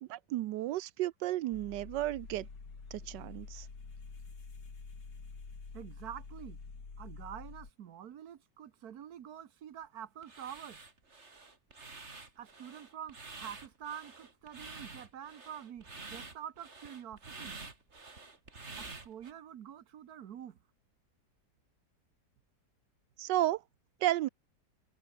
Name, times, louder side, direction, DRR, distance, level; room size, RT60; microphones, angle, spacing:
voice 1, 0.0-2.5 2.9-3.7 23.2-23.6 24.0-24.3, right 15 dB, 80° right, 1.2 m, -33 dB
sound 1, 1.5-7.7, left 4 dB, 85° left, 4.0 m, -48 dB
voice 2, 5.7-6.6 7.0-10.8 12.4-17.6 18.7-20.6, right 9 dB, 65° right, 1.5 m, -47 dB
sound 2, 10.2-19.3, right 3 dB, 40° right, 3.0 m, -49 dB
omnidirectional pair, 1.8 m